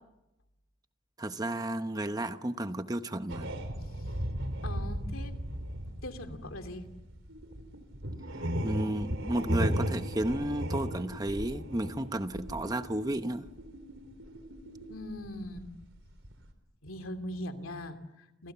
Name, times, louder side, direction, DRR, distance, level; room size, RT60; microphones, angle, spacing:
voice 1, 1.2-3.5 8.6-13.5, right 1 dB, 20° right, 9 dB, 0.9 m, -32 dB
sound 1, 3.3-13.8 14.0-16.5, equal, 65° right, 3.6 m, -35 dB
voice 2, 4.6-5.7 6.0-6.9 14.9-15.7 16.8-18.5, left 1 dB, 85° left, 6 dB, 2.8 m, -41 dB
sound 2, 7.3-15.0, right 2 dB, 90° right, 7.1 m, -50 dB
29.5 x 29.0 x 6.9 m, 0.93 s
head